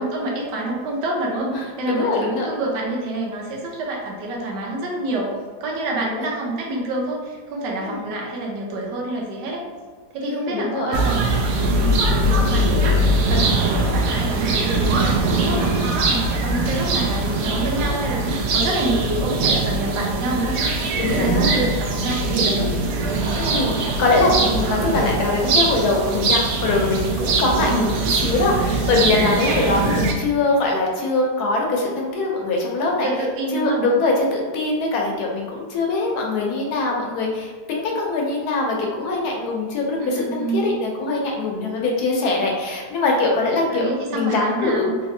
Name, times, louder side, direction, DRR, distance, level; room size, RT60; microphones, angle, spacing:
voice 1, 0.0-5.4 5.6-9.6 10.1-11.4 11.8-12.7 13.3-20.6 21.0-22.7 27.7-28.1 33.0-33.9 40.0-40.7 43.7-44.9, right 2 dB, 90° right, -2 dB, 1.3 m, -27 dB
voice 2, 1.5-2.5 6.1-6.3 7.8-8.0 10.2-11.0 20.9-21.7 23.3-33.1 33.5-44.9, left 3 dB, 70° left, -1 dB, 1.1 m, -22 dB
sound 1, 10.9-30.1, right 2 dB, 70° right, 0.8 m, -21 dB
3.3 x 2.8 x 2.6 m, 1.5 s
omnidirectional pair, 1.8 m